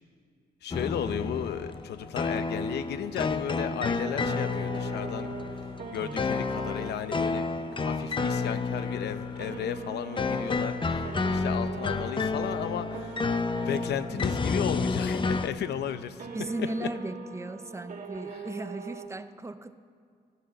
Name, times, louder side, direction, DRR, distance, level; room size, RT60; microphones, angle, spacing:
voice 1, 0.6-5.3 5.9-13.2 13.6-16.3 16.6-16.9 18.3-18.4, left 9 dB, 85° left, 11 dB, 0.7 m, -35 dB
sound 1, 0.7-15.5, left 4 dB, 30° left, 0.7 m, -30 dB
sound 2, 2.5-14.2, left 4 dB, 45° left, 4.3 m, -56 dB
sound 3, 3.9-19.1, right 4 dB, 55° right, 1.4 m, -42 dB
voice 2, 6.0-6.5 16.3-19.8, right 2 dB, 15° right, 12 dB, 0.6 m, -37 dB
14.0 x 12.0 x 6.7 m, 2.1 s
cardioid pair, 90°, 17 cm